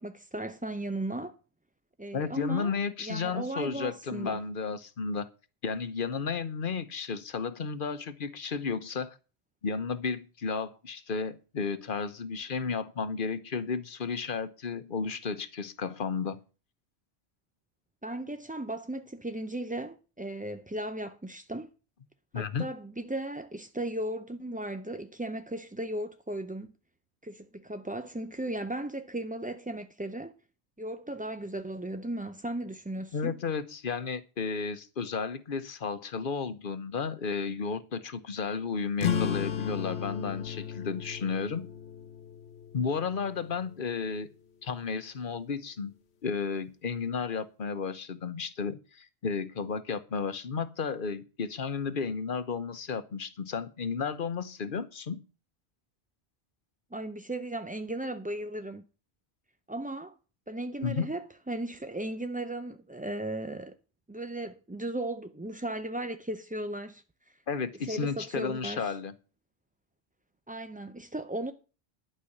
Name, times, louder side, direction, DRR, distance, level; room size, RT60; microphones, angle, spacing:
voice 1, 0.0-1.3 2.0-4.4 18.0-21.7 22.3-26.7 27.2-30.3 30.8-33.4 56.9-58.8 59.7-60.1 60.5-63.7 64.1-67.4 67.8-69.0 70.5-71.5, right 1 dB, 10° right, 0.4 m, -36 dB
voice 2, 2.1-5.3 5.6-9.2 9.6-16.4 22.3-22.6 33.1-41.7 42.7-44.3 44.6-45.9 46.2-55.2 60.8-61.1 67.5-69.1, left 5 dB, 55° left, 1.1 m, -33 dB
sound 1, 39.0-44.1, left 8 dB, 80° left, 1.2 m, -35 dB
11.5 x 5.6 x 8.5 m
omnidirectional pair, 1.1 m